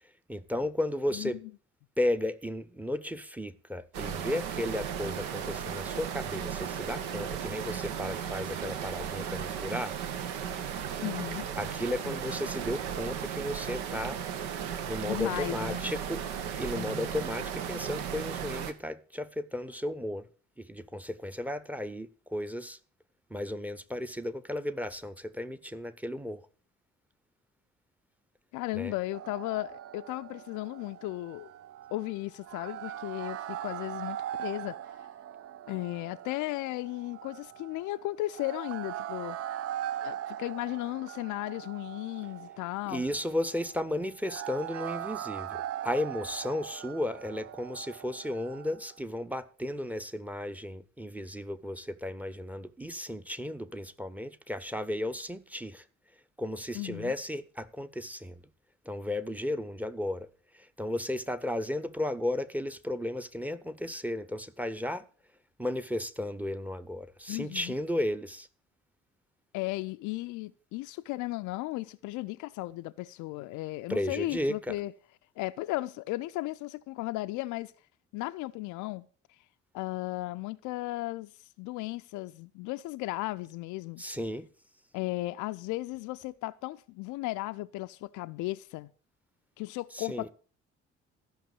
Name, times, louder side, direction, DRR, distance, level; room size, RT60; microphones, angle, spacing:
voice 1, 0.3-1.4 2.0-10.0 11.6-14.2 14.9-16.2 16.6-20.3 20.6-22.8 23.3-26.5 28.7-28.9 42.9-55.8 56.4-58.4 58.8-60.3 60.5-65.1 65.6-68.5 73.9-74.8 84.0-84.5 89.9-90.3, left 1 dB, 5° right, 0.9 m, -34 dB
voice 2, 1.1-1.5 11.0-11.5 15.0-15.8 16.7-17.2 28.5-31.5 31.9-34.8 35.7-39.4 40.0-43.0 56.7-57.1 67.3-67.7 69.5-74.9 75.4-77.7 78.1-79.1 79.7-81.3 81.6-84.0 84.9-88.9 89.6-90.3, left 19 dB, 55° left, 0.6 m, -35 dB
sound 1, 3.9-18.7, right 8 dB, 70° right, 1.1 m, -35 dB
sound 2, 29.1-49.0, right 11 dB, 40° right, 0.5 m, -41 dB
13.5 x 6.0 x 8.3 m
figure-of-eight pair, 45°, 36 cm